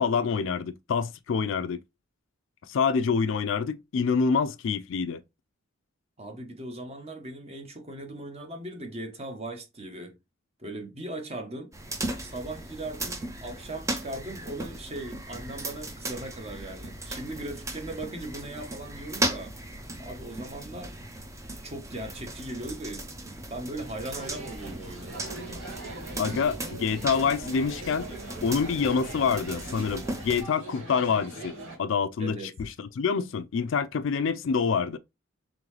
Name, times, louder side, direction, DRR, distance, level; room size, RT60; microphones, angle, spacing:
voice 1, 0.0-1.8 2.7-5.2 26.2-28.1 28.4-35.0, left 5 dB, 65° left, 0.4 m, -26 dB
voice 2, 6.2-10.2 10.6-11.7 12.2-19.6 20.0-21.0 21.6-25.2 32.2-32.5, right 1 dB, 30° right, 0.9 m, -39 dB
sound 1, 11.7-30.4, right 1 dB, 15° right, 0.6 m, -37 dB
sound 2, 24.1-31.8, right 2 dB, 70° right, 1.8 m, -41 dB
3.8 x 3.1 x 3.1 m
head